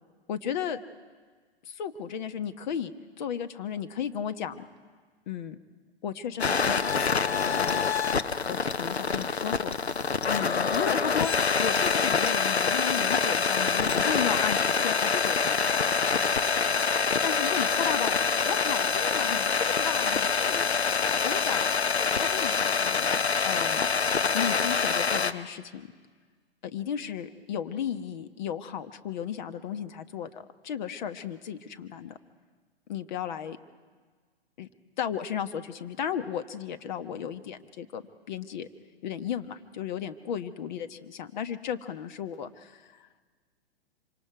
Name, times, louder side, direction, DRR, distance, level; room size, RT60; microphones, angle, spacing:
voice 1, 0.3-0.8 1.6-4.6 5.3-5.6 6.0-6.8 7.6-7.8 8.5-9.7 10.3-11.3 11.6-15.8 17.2-18.1 18.4-20.6 21.2-21.6 22.2-23.9 24.3-25.9 26.6-32.2 32.9-33.6 34.6-34.7 35.0-38.7 39.0-43.1, left 8 dB, 45° left, 9 dB, 1.2 m, -34 dB
sound 1, 6.4-25.3, left 5 dB, 85° left, 0.9 m, -26 dB
26.0 x 25.5 x 4.8 m, 1.5 s
figure-of-eight pair, 115°, 31 cm